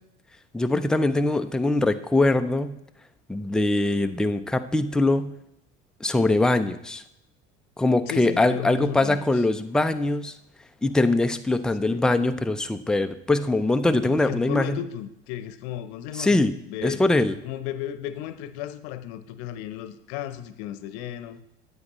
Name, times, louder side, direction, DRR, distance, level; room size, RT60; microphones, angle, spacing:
voice 1, 0.5-2.7 3.3-5.3 6.0-7.0 7.8-10.3 10.8-14.8 16.1-16.5 16.8-17.4, left 2 dB, ahead, 8 dB, 0.4 m, -22 dB
voice 2, 8.1-9.4 11.8-12.0 14.0-16.4 16.6-17.0 17.4-21.4, left 11 dB, 70° left, 12 dB, 0.8 m, -34 dB
9.5 x 8.0 x 3.0 m, 0.80 s
hypercardioid pair, 80°, 35 cm